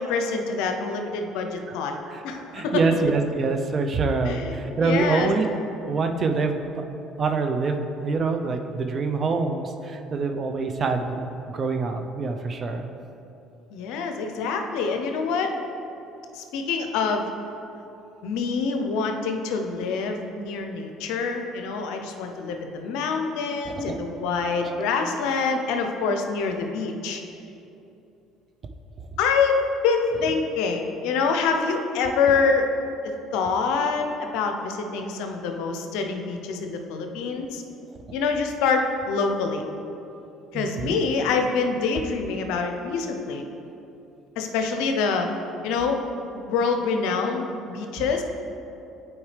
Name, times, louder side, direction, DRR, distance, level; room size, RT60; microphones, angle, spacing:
voice 1, 0.0-2.0 2.2-2.8 4.2-5.3 13.7-15.5 16.3-17.3 18.2-27.2 29.2-32.7 33.3-37.6 38.1-39.6 40.5-43.4 44.4-45.3 45.6-46.0 46.3-48.2, left 4 dB, 80° left, 4 dB, 0.6 m, -26 dB
voice 2, 2.5-5.5 5.9-6.6 7.2-11.2 11.5-12.9 23.6-24.0 24.6-24.7 40.5-41.0, right 4 dB, 45° right, 5 dB, 0.6 m, -25 dB
8.7 x 4.5 x 3.3 m, 2.9 s
supercardioid pair, 80°, 0 cm